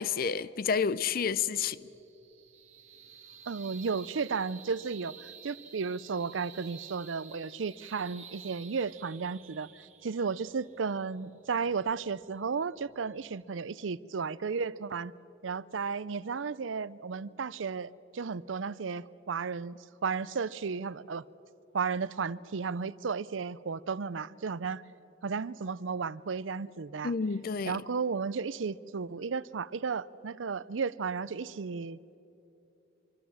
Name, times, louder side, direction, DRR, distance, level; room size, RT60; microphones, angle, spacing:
voice 1, 0.0-1.8 27.0-27.8, left 6 dB, 50° left, 0.5 m, -30 dB
sound 1, 0.8-13.4, right 8 dB, 40° right, 1.5 m, -52 dB
voice 2, 3.5-15.1 15.4-21.2 21.7-24.8 25.2-27.1 27.7-32.2, right 5 dB, 85° right, 0.5 m, -34 dB
25.0 x 24.0 x 7.2 m
head